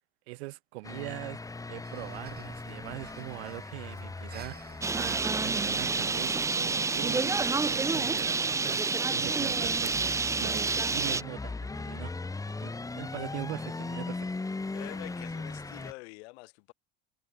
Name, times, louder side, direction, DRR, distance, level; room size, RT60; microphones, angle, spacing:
voice 1, 0.3-1.4 1.7-4.6 4.9-8.8 9.1-10.1 10.4-12.1 12.6-14.3, right 22 dB, 80° right, 1.3 m, -41 dB
sound 1, 0.8-15.9, left 3 dB, 10° left, 1.0 m, -40 dB
Breathing, 1.8-9.5, right 7 dB, 30° right, 3.5 m, -54 dB
Bird, 4.8-11.2, right 4 dB, 10° right, 0.4 m, -28 dB
voice 2, 14.7-16.7, left 25 dB, 75° left, 4.8 m, -46 dB
hypercardioid pair, 85°, 32 cm